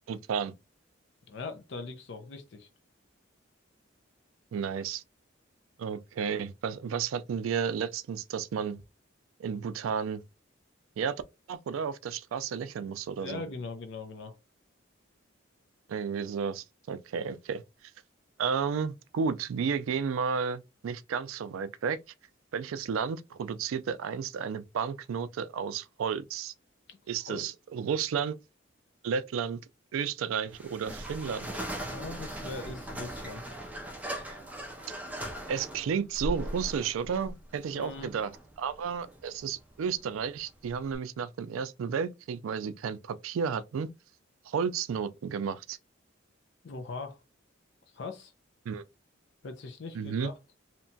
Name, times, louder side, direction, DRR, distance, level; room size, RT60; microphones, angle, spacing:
voice 1, 0.1-0.5 4.5-5.0 5.8-8.8 9.4-10.2 11.0-11.2 11.5-13.4 15.9-17.6 18.4-22.0 22.5-26.5 27.1-28.3 29.0-29.6 29.9-31.5 35.5-38.3 38.6-43.9 44.5-45.8 48.7-48.8 49.9-50.3, right 6 dB, 90° right, 0.3 m, -32 dB
voice 2, 1.3-2.7 13.2-14.3 26.9-27.0 27.3-27.5 31.8-33.5 37.7-38.1 46.6-47.2 47.9-48.3 49.4-50.3, left 3 dB, 60° left, 0.4 m, -40 dB
sound 1, 30.5-41.0, right 1 dB, 5° right, 0.4 m, -40 dB
2.8 x 2.2 x 2.6 m
head